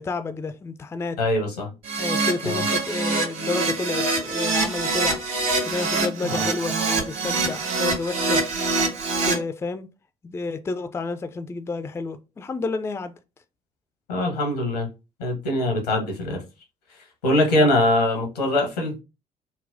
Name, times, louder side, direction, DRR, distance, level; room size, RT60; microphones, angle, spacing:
voice 1, 0.0-1.2 2.0-5.2 5.7-6.7 7.0-8.4 9.2-9.9 10.2-13.1 17.5-17.7, left 3 dB, 15° left, 0.3 m, -30 dB
voice 2, 1.2-1.7 2.4-2.6 6.2-6.4 14.1-14.9 15.2-16.4 17.2-19.0, left 1 dB, 85° left, 0.9 m, -22 dB
Keyboard (musical), 1.8-9.3, right 3 dB, 65° right, 1.5 m, -24 dB
4.1 x 2.0 x 2.5 m
figure-of-eight pair, 50°, 20 cm